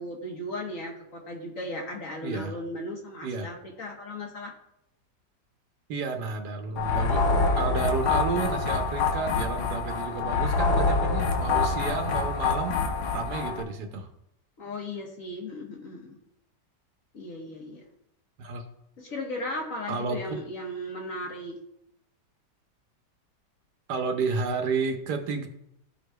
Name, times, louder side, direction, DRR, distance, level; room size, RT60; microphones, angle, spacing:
voice 1, 0.0-4.5 7.3-7.8 14.6-16.2 17.1-17.8 19.0-21.6, left 1 dB, 50° left, 0 dB, 1.5 m, -36 dB
voice 2, 2.2-2.6 3.2-3.5 5.9-7.2 7.6-12.8 13.1-14.1 18.4-18.6 19.9-20.4 23.9-25.5, right 4 dB, 70° right, 5 dB, 1.3 m, -31 dB
sound 1, 6.8-13.6, left 4 dB, 70° left, 1.4 m, -26 dB
14.0 x 4.9 x 2.3 m, 0.80 s
omnidirectional pair, 1.9 m